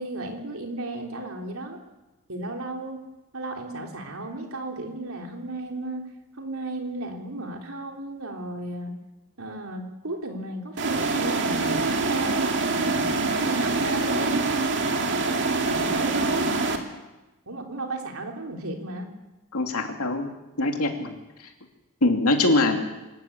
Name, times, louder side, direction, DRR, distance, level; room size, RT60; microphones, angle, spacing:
voice 1, 0.0-1.8 2.3-3.0 3.3-6.1 6.4-8.9 9.4-13.0 13.5-14.5 15.5-16.5 17.5-19.1, right 2 dB, 70° right, 2 dB, 3.6 m, -34 dB
sound 1, 10.8-16.8, right 3 dB, 55° right, 2.3 m, -25 dB
voice 2, 19.5-20.3 20.6-21.2 22.0-22.8, left 2 dB, 80° left, 4 dB, 2.7 m, -23 dB
25.0 x 14.0 x 8.7 m, 1.1 s
head